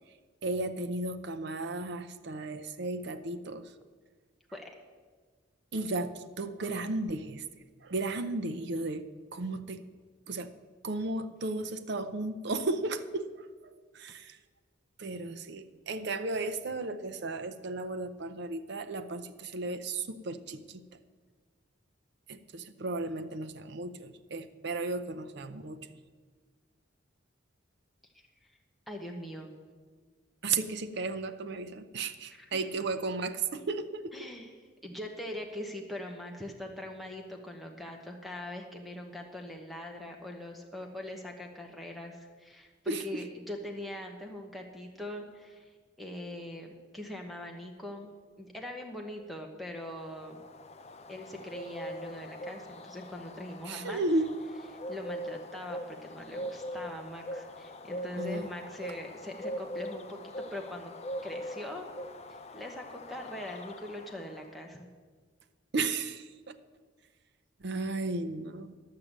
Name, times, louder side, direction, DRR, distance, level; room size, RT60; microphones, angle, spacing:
voice 1, 0.4-3.7 5.7-7.4 7.8-9.9 10.3-10.5 10.8-14.4 15.0-20.8 22.3-25.9 30.4-34.3 42.9-43.2 53.7-54.4 58.2-58.5 65.7-66.6 67.6-68.7, right 2 dB, 60° right, 9 dB, 0.6 m, -34 dB
voice 2, 28.9-29.6 32.3-32.6 34.1-34.5 34.8-50.4 51.1-54.0 54.9-60.9 61.2-61.9 62.3-64.9, left 1 dB, ahead, 2 dB, 1.0 m, -42 dB
Bird, 49.9-64.6, equal, 35° left, 0.5 m, -42 dB
11.5 x 6.7 x 7.3 m, 1.5 s
head